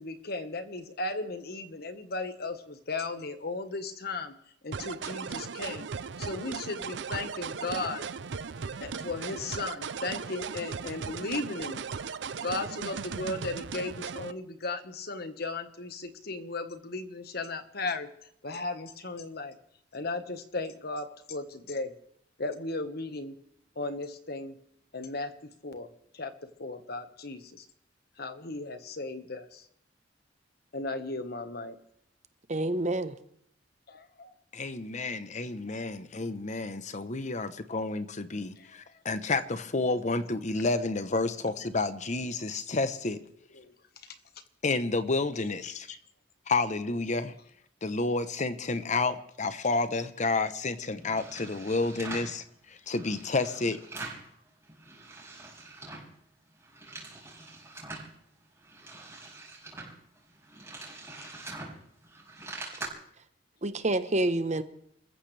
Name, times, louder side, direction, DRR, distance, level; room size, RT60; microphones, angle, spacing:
voice 1, 0.0-4.3 4.6-5.9 6.2-8.1 8.8-11.9 12.4-18.1 18.4-19.5 19.9-21.9 22.4-23.3 23.8-24.5 24.9-25.3 25.6-25.9 26.1-26.3 26.6-27.6 28.2-29.6 30.7-31.8 33.9-34.3 38.6-38.7 43.5-43.7, left 3 dB, 60° left, 1.5 m, -36 dB
sound 1, 4.7-14.3, right 5 dB, 75° right, 0.6 m, -37 dB
voice 2, 32.5-33.1 63.6-64.6, right 2 dB, 40° right, 1.1 m, -27 dB
voice 3, 34.5-43.2 44.6-45.9 46.5-47.3 47.8-52.4 52.9-53.8, left 3 dB, 40° left, 0.9 m, -30 dB
sound 2, 51.0-52.4 52.9-54.3 54.6-56.1 56.5-58.1 58.6-62.9, right 2 dB, 15° right, 5.5 m, -44 dB
28.0 x 15.0 x 3.4 m
head